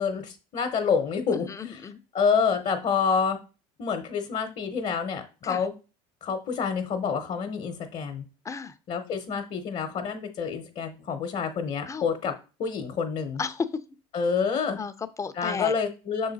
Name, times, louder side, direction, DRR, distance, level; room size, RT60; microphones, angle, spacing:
voice 1, 0.0-1.5 2.1-3.4 3.8-5.7 6.2-8.2 8.9-12.3 12.6-13.4 14.1-14.8 15.4-16.3, left 6 dB, 50° left, 6 dB, 0.9 m, -27 dB
voice 2, 1.3-2.0 5.4-5.7 8.4-8.7 11.9-12.0 13.4-13.7 14.7-15.7, left 5 dB, 20° left, 11 dB, 0.5 m, -33 dB
6.0 x 3.9 x 4.1 m, 0.32 s
supercardioid pair, 95°, 15 cm